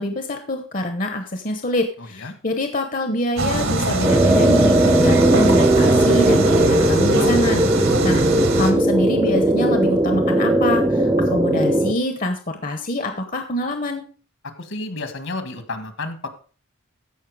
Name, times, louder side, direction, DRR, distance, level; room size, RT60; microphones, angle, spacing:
voice 1, 0.0-14.0, left 1 dB, 40° left, 7 dB, 0.9 m, -25 dB
sound 1, 3.4-8.7, right 2 dB, 70° right, 1.9 m, -23 dB
sound 2, 4.0-11.9, right 1 dB, 15° right, 0.6 m, -18 dB
voice 2, 14.6-16.3, left 2 dB, 65° left, 9 dB, 1.7 m, -31 dB
14.5 x 5.7 x 4.8 m, 0.40 s
head